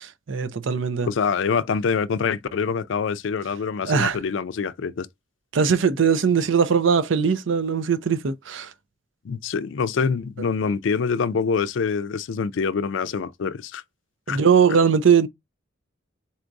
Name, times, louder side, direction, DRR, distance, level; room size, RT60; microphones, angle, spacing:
voice 1, 0.0-1.1 3.8-4.2 5.5-8.7 14.3-15.3, right 6 dB, 85° right, 0.5 m, -20 dB
voice 2, 1.0-5.1 9.2-13.8 14.3-14.4, left 5 dB, 80° left, 0.4 m, -25 dB
4.2 x 2.6 x 4.6 m
head